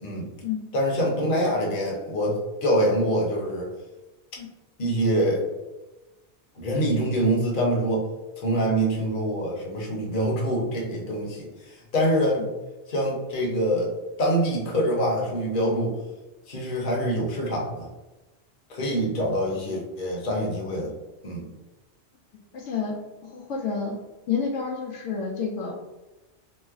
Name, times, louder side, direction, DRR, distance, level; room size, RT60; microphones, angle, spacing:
voice 1, 0.7-3.7 4.8-5.5 6.6-8.1 8.4-12.5 12.9-13.9 14.2-15.9 16.5-17.9 18.7-20.9 21.2-21.5, equal, 50° left, -2 dB, 1.0 m, -25 dB
voice 2, 22.5-22.9 23.2-24.0 24.3-25.7, left 6 dB, 90° left, -1 dB, 0.9 m, -29 dB
3.1 x 2.1 x 3.5 m, 1.1 s
omnidirectional pair, 1.2 m